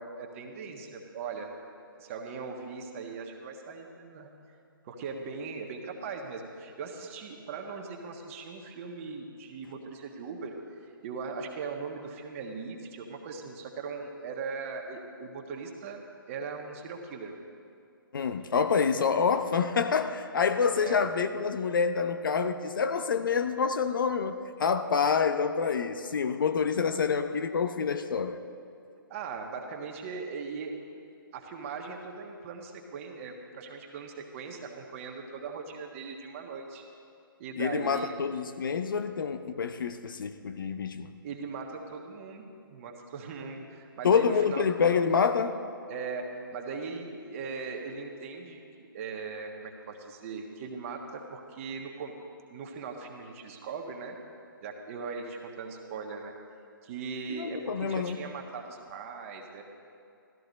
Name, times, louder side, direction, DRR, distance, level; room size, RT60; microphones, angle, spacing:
voice 1, 0.0-1.5 1.9-4.3 4.8-10.6 11.0-16.0 16.3-17.3 18.9-19.1 20.8-21.1 29.1-30.7 31.3-36.8 37.4-38.1 41.2-44.6 45.9-52.1 52.5-54.2 54.6-56.3 56.8-59.6, right 5 dB, 35° right, 2 dB, 1.5 m, -39 dB
voice 2, 18.1-28.4 37.6-41.1 44.0-45.6 57.3-58.2, left 6 dB, 65° left, 9 dB, 0.7 m, -27 dB
14.0 x 13.5 x 4.1 m, 2.5 s
figure-of-eight pair, 135°, 12 cm